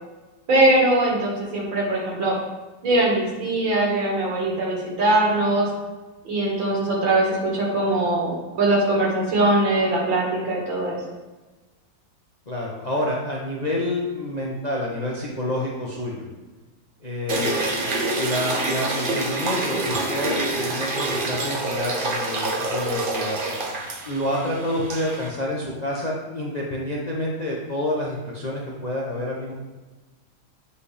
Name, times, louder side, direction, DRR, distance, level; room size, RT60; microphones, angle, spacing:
voice 1, 0.5-2.3 2.8-5.7 6.2-11.0, right 2 dB, 90° right, -3 dB, 2.6 m, -21 dB
voice 2, 12.5-16.3 17.0-17.9 18.2-23.4 24.0-29.5, left 1 dB, 45° left, -3 dB, 0.5 m, -28 dB
sound 1, 17.3-25.3, right 2 dB, 55° right, 0.5 m, -27 dB
8.2 x 5.1 x 3.4 m, 1.2 s
omnidirectional pair, 2.0 m